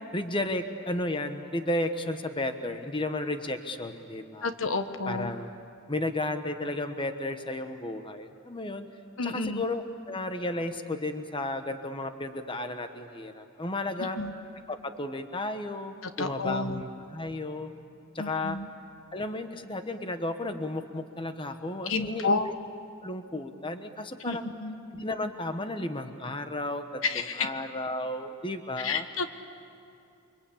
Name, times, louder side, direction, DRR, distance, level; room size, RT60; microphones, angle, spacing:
voice 1, 0.1-4.5 5.0-5.5 5.9-8.9 9.2-14.2 14.7-17.7 18.1-18.6 19.1-22.5 23.0-24.5 24.9-29.0, left 2 dB, 25° left, 8 dB, 1.2 m, -33 dB
voice 2, 4.4-5.3 9.2-9.6 14.2-14.3 16.2-16.8 18.2-18.7 21.9-22.5 24.2-24.8 27.0-27.5 28.8-29.3, left 3 dB, 70° left, 8 dB, 1.3 m, -30 dB
29.0 x 24.0 x 8.6 m, 2.4 s
head